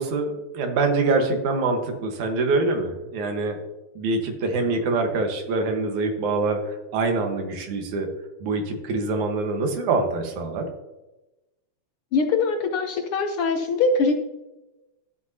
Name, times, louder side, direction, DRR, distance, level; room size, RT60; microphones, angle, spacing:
voice 1, 0.0-3.6 4.0-8.1 8.4-10.7, right 3 dB, 85° right, 4 dB, 2.8 m, -25 dB
voice 2, 12.1-14.1, left 4 dB, 70° left, 5 dB, 1.3 m, -22 dB
13.5 x 8.3 x 2.8 m, 1.0 s
omnidirectional pair, 3.3 m